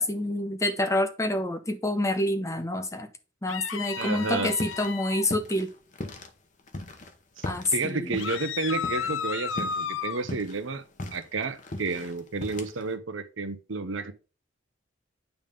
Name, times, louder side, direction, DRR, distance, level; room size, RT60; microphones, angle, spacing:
voice 1, 0.0-3.1 3.4-5.7 7.4-8.2, left 1 dB, 15° left, 0.8 m, -27 dB
sound 1, 3.5-5.3 8.2-10.2, left 7 dB, 90° left, 0.6 m, -33 dB
voice 2, 4.0-4.5 7.4-10.8 11.1-14.1, right 3 dB, 90° right, 0.9 m, -31 dB
sound 2, 4.2-4.9 5.2-6.3 6.7-9.3 9.6-9.9 10.2-12.9, left 1 dB, 40° left, 1.0 m, -38 dB
9.1 x 3.5 x 5.2 m
head